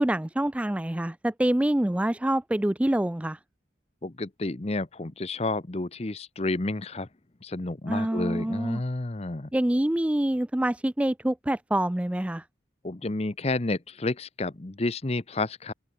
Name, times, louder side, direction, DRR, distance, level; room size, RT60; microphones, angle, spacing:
voice 1, 0.0-3.4 7.9-8.8 9.5-12.4, right 1 dB, 5° right, 0.3 m, -26 dB
voice 2, 4.0-7.1 7.4-9.5 12.8-15.7, left 2 dB, 35° left, 0.8 m, -30 dB
open air
head